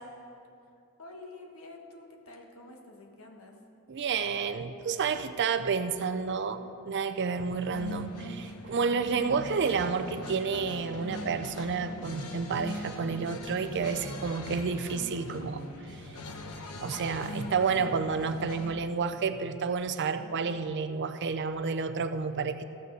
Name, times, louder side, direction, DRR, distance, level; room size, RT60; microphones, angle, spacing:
voice 1, 1.0-3.5 20.2-20.4, left 2 dB, 65° left, 1 dB, 1.4 m, -48 dB
voice 2, 3.9-15.6 15.9-16.0 16.8-22.6, right 5 dB, 50° right, 10 dB, 0.5 m, -30 dB
sound 1, 7.4-18.7, left 1 dB, 85° left, 1.0 m, -41 dB
14.5 x 6.4 x 6.8 m, 2.7 s
head